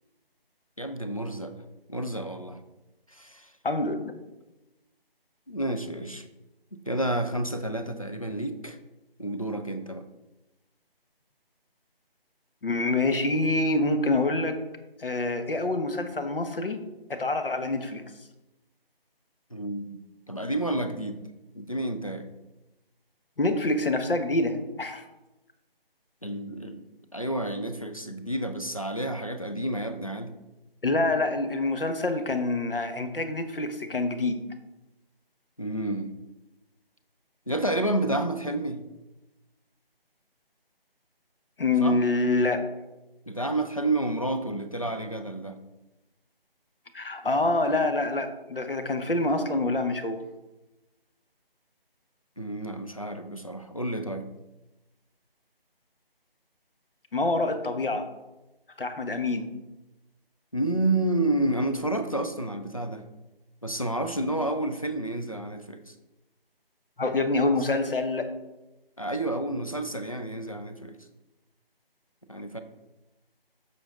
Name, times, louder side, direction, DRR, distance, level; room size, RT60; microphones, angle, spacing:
voice 1, 0.8-1.5 1.9-2.6 3.1-3.5 5.5-6.3 6.7-8.8 9.2-10.1 19.5-20.0 20.3-21.2 21.5-22.3 26.2-26.8 27.1-30.3 35.6-36.2 37.5-38.8 41.8-42.0 43.3-45.6 52.4-54.3 60.5-63.0 63.6-65.9 69.0-71.0 72.3-72.6, right 1 dB, 35° left, 8 dB, 0.5 m, -30 dB
voice 2, 3.6-4.1 12.6-14.6 15.0-16.8 17.1-18.0 23.4-25.0 30.8-34.4 41.6-42.6 46.9-50.2 57.1-58.1 58.8-59.5 67.0-68.3, left 2 dB, 65° left, 7 dB, 1.1 m, -26 dB
7.8 x 6.3 x 3.7 m, 1.0 s
figure-of-eight pair, 180°, 30 cm